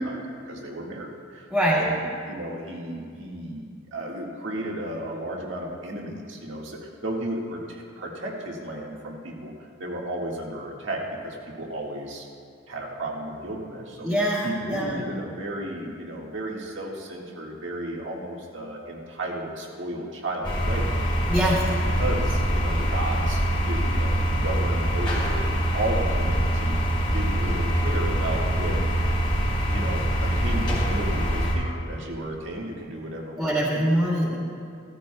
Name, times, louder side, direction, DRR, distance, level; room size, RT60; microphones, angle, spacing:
voice 1, 0.5-12.3 12.7-14.1 14.4-20.9 21.5-26.8 27.0-28.8 29.7-33.4 33.7-33.8, right 1 dB, 70° right, -1 dB, 1.7 m, -34 dB
voice 2, 1.5-1.8 14.0-15.0 21.3-21.6 33.4-34.4, equal, ahead, -9 dB, 2.2 m, -23 dB
sound 1, 20.4-31.5, equal, 25° left, 3.1 m, -24 dB
16.0 x 13.5 x 2.3 m, 2.2 s
head